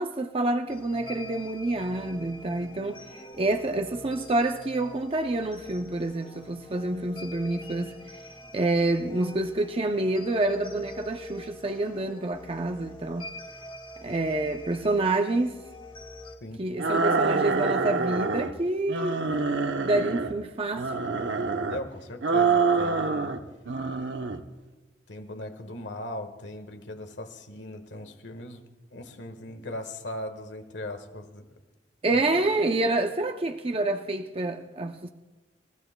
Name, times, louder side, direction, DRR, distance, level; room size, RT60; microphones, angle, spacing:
voice 1, 0.0-8.0 8.5-13.3 14.0-15.6 16.6-19.2 19.8-20.9 32.0-35.1, right 2 dB, 30° right, 0.5 m, -28 dB
sound 1, 0.7-16.4, left 1 dB, 30° left, 1.0 m, -44 dB
sound 2, 16.8-18.5 18.9-20.3 20.7-21.8 22.2-23.4 23.7-24.4, right 4 dB, 80° right, 0.8 m, -26 dB
voice 2, 21.6-23.3 25.1-28.6 28.9-31.6 32.1-32.2, left 1 dB, 75° left, 1.5 m, -39 dB
27.5 x 15.5 x 2.2 m
head